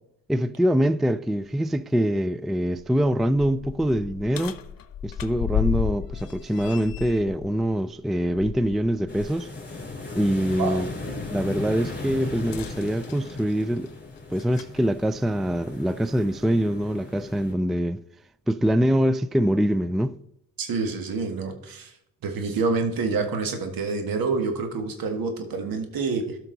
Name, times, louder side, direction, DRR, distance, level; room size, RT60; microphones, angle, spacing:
voice 1, 0.3-4.6 5.0-9.5 10.1-10.9 11.3-13.9 14.3-18.0 18.5-20.2, equal, ahead, 0.3 m, -24 dB
sound 1, 1.4-1.5 2.0-2.1 2.7-9.4 9.8-10.0 12.4-14.8 15.8-15.9 16.7-16.8, left 9 dB, 70° left, 0.9 m, -34 dB
sound 2, 9.1-17.5, left 3 dB, 30° left, 3.4 m, -37 dB
voice 2, 10.6-11.2 20.6-21.9 22.2-26.4, right 4 dB, 75° right, 1.8 m, -27 dB
13.0 x 5.8 x 4.0 m
cardioid pair, 65°, 35 cm